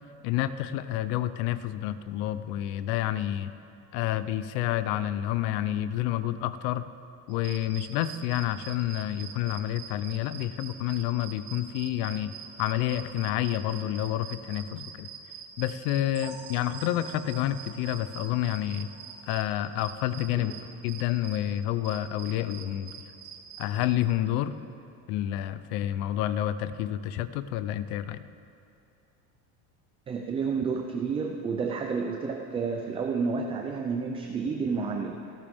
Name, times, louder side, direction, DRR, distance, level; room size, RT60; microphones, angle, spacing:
voice 1, 0.2-3.6 3.9-6.9 7.3-12.3 12.6-15.1 15.6-18.9 19.3-20.5 20.8-22.9 23.6-24.5 25.1-28.2, left 12 dB, 65° left, 14 dB, 0.7 m, -29 dB
sound 1, 7.3-21.4 21.8-23.9, right 8 dB, 90° right, 3.2 m, -44 dB
sound 2, 16.1-19.8 20.2-20.3 20.7-20.8 21.3-21.4, right 4 dB, 65° right, 2.0 m, -51 dB
voice 2, 30.1-35.2, right 5 dB, 15° right, 3 dB, 0.4 m, -30 dB
28.0 x 12.0 x 3.6 m, 2.7 s
cardioid pair, 170°, 41 cm